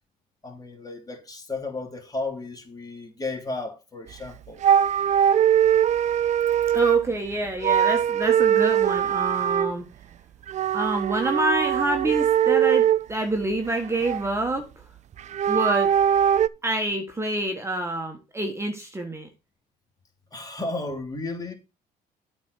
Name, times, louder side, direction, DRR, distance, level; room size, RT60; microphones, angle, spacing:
voice 1, 0.4-4.6 20.3-21.5, left 2 dB, 20° left, 2.7 m, -33 dB
sound 1, 4.1-4.3 4.6-7.2 7.6-9.7 10.5-13.1 13.5-14.5 15.2-16.5, right 9 dB, 45° right, 0.5 m, -21 dB
voice 2, 6.7-9.8 10.7-14.9 15.5-15.9 16.6-19.3, right 1 dB, 15° right, 1.5 m, -27 dB
8.4 x 4.4 x 6.4 m
cardioid pair, 110°, 17 cm